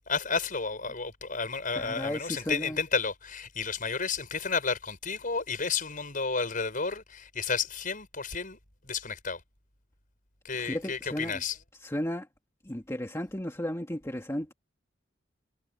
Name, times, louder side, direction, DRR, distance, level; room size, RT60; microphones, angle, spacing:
voice 1, 0.1-8.6 8.8-9.4 10.4-11.6, left 5 dB, 45° left, 6.4 m, -32 dB
voice 2, 1.7-2.8 10.6-11.4 11.8-12.3 12.6-14.5, equal, 15° left, 2.0 m, -34 dB
head